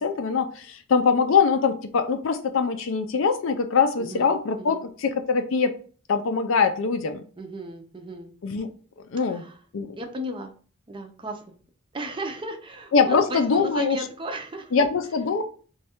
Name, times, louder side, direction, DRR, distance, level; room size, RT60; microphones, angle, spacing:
voice 1, 0.0-5.7 6.1-7.2 8.4-8.7 9.1-9.4 9.7-10.0 12.9-14.0 14.7-15.4, left 5 dB, 65° left, 0.4 m, -23 dB
voice 2, 4.0-4.8 7.4-8.3 9.2-9.6 10.0-10.5 10.9-11.5 11.9-14.8, right 1 dB, 25° right, 0.5 m, -35 dB
3.2 x 2.3 x 4.3 m
head